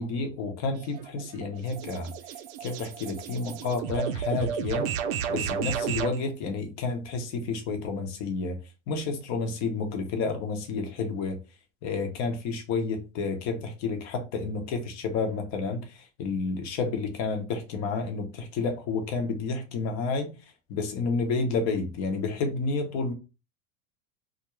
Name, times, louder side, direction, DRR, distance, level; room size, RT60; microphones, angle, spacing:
voice 1, 0.0-2.1 2.6-4.9 5.3-8.6 8.9-11.4 11.8-15.9 16.2-20.3 20.7-23.1, left 4 dB, 50° left, 0.9 m, -30 dB
sound 1, 0.7-6.2, right 7 dB, 65° right, 0.5 m, -33 dB
2.5 x 2.1 x 3.0 m
hypercardioid pair, 105°, 35 cm